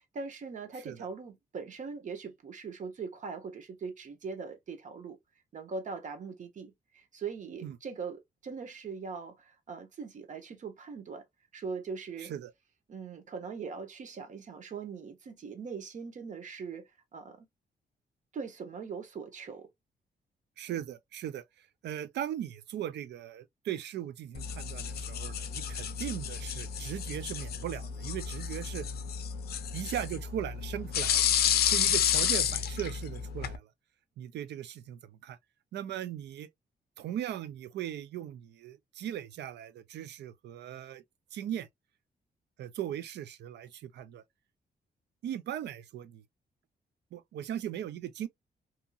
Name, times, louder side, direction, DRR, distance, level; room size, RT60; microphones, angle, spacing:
voice 1, 0.1-5.2 5.5-11.2 11.5-12.3 12.9-17.5 18.3-19.7, right 5 dB, 45° right, 0.9 m, -41 dB
voice 2, 12.2-12.5 20.6-28.9 29.7-31.2 31.6-33.7 34.2-35.4 35.7-36.5 37.0-41.0 41.3-41.7 42.6-44.2 45.2-46.2 47.1-48.3, right 11 dB, 85° right, 0.5 m, -38 dB
sound 1, 24.3-33.6, left 9 dB, 65° left, 0.4 m, -31 dB
2.8 x 2.7 x 2.3 m
wide cardioid pair, 155°, 17 cm